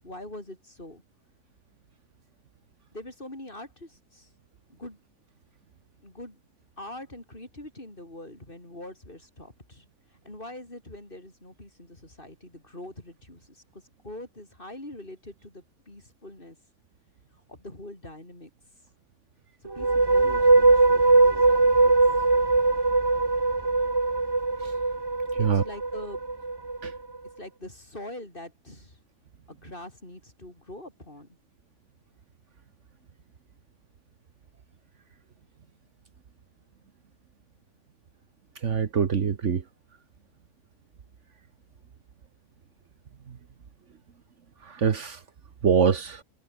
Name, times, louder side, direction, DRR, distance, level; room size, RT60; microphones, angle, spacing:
voice 1, 0.0-1.0 2.9-4.3 4.7-5.0 6.0-6.4 6.8-16.6 17.5-18.5 19.6-22.2 25.4-26.2 27.4-29.0 29.5-31.3, left 1 dB, 40° left, 6.2 m, -44 dB
sound 1, 19.7-27.0, right 3 dB, 20° right, 1.0 m, -21 dB
voice 2, 38.6-39.6 44.7-45.2 45.6-46.2, right 6 dB, 60° right, 1.5 m, -24 dB
omnidirectional pair, 1.4 m